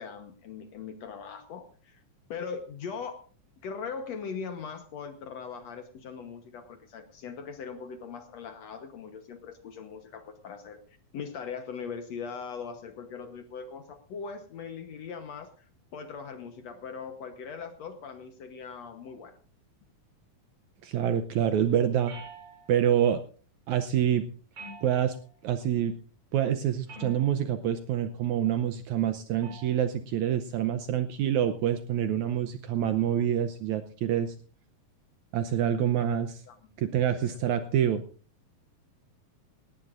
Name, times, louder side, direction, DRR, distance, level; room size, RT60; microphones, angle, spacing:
voice 1, 0.0-2.0 2.3-3.2 3.6-10.8 11.1-19.4 36.5-36.6 37.1-37.4, left 6 dB, 65° left, 7 dB, 1.9 m, -40 dB
voice 2, 20.8-22.1 22.7-23.2 23.7-24.3 24.8-25.2 25.4-25.9 26.3-34.3 35.3-36.3 36.8-38.0, right 10 dB, 75° right, 9 dB, 1.8 m, -26 dB
sound 1, 22.1-22.9 24.5-25.4 26.9-27.6 29.4-29.8, right 1 dB, 45° right, 7.5 m, -46 dB
18.5 x 17.5 x 2.5 m, 0.39 s
omnidirectional pair, 4.0 m